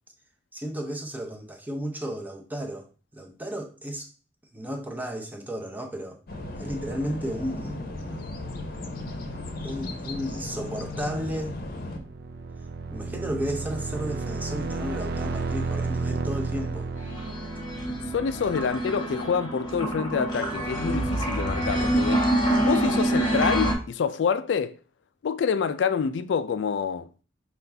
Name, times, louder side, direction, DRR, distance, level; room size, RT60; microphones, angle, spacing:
voice 1, 0.5-4.1 4.5-6.2 6.6-7.8 9.6-11.6 12.9-16.9, equal, 10° right, 0.7 m, -33 dB
sound 1, 6.3-12.0, left 2 dB, 55° left, 0.7 m, -36 dB
sound 2, 11.6-19.2, right 3 dB, 60° right, 0.4 m, -32 dB
sound 3, 17.0-23.7, right 1 dB, 25° left, 1.2 m, -26 dB
voice 2, 18.1-22.3 22.6-24.8 25.2-27.1, left 6 dB, 75° left, 0.3 m, -27 dB
5.5 x 2.5 x 3.3 m
head